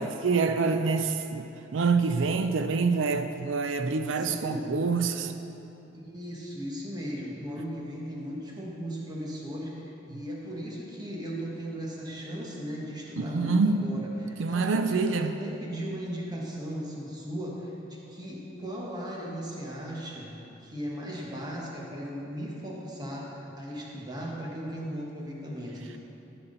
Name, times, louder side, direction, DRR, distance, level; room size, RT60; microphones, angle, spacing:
voice 1, 0.0-5.3 13.2-14.1 14.4-15.3, right 4 dB, 80° right, 8 dB, 0.5 m, -26 dB
voice 2, 4.2-4.7 5.9-20.3 20.6-26.0, equal, 20° right, -3 dB, 1.4 m, -37 dB
14.5 x 6.0 x 3.9 m, 2.9 s
head